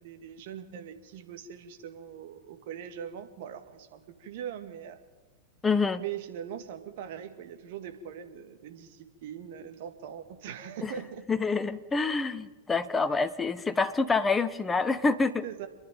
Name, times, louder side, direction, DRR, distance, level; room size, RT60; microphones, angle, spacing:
voice 1, 0.0-5.0 6.0-11.2 15.4-15.7, right 9 dB, 50° right, 7 dB, 2.1 m, -41 dB
voice 2, 5.6-6.0 10.8-10.9 11.3-15.4, left 4 dB, 15° left, 12 dB, 1.1 m, -27 dB
27.5 x 10.5 x 9.2 m, 1.2 s
figure-of-eight pair, 90°, 0 cm